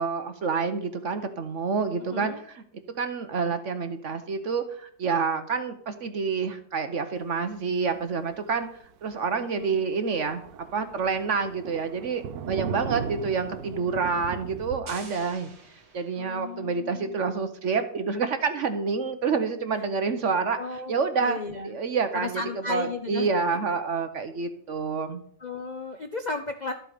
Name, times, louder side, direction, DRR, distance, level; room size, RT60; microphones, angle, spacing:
voice 1, 0.0-2.6 3.0-8.7 9.0-10.4 10.7-15.5 15.9-21.4 21.6-22.4 22.7-25.2, right 5 dB, 55° right, 9 dB, 1.0 m, -28 dB
voice 2, 2.1-2.4 9.5-9.8 12.7-13.6 16.2-17.2 20.6-20.9 21.2-21.7 22.1-23.3 25.4-26.7, left 3 dB, 50° left, 7 dB, 0.5 m, -35 dB
Thunder, 7.8-8.0 8.4-8.5 8.8-8.9 9.3-9.4 9.6-14.8, right 8 dB, 85° right, 1.4 m, -37 dB
sound 1, 14.9-16.7, right 4 dB, 70° right, 2.6 m, -47 dB
12.5 x 7.7 x 4.9 m, 0.63 s
omnidirectional pair, 1.8 m